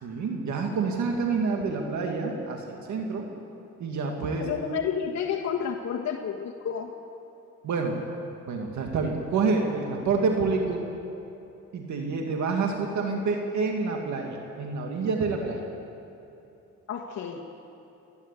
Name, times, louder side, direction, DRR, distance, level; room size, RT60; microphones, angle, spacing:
voice 1, 0.0-3.3 3.8-4.5 7.6-8.0 8.5-10.8 11.7-15.6, right 4 dB, 70° right, 1 dB, 2.2 m, -28 dB
voice 2, 4.4-6.9 16.9-17.5, left 7 dB, 65° left, -1 dB, 1.5 m, -30 dB
28.5 x 11.0 x 8.5 m, 2.9 s
cardioid pair, 90°, 30 cm